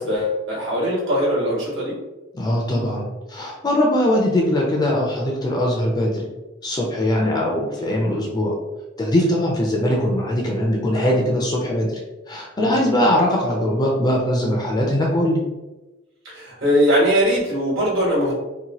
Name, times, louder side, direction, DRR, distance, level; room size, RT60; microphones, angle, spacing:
voice 1, 0.0-2.0 7.2-7.5 12.6-12.9 16.2-18.3, equal, 65° right, -6 dB, 1.2 m, -21 dB
voice 2, 2.3-6.3 6.6-8.5 9.0-12.0 12.3-15.4, left 1 dB, 20° left, -1 dB, 0.4 m, -21 dB
2.8 x 2.2 x 2.8 m, 1.1 s
head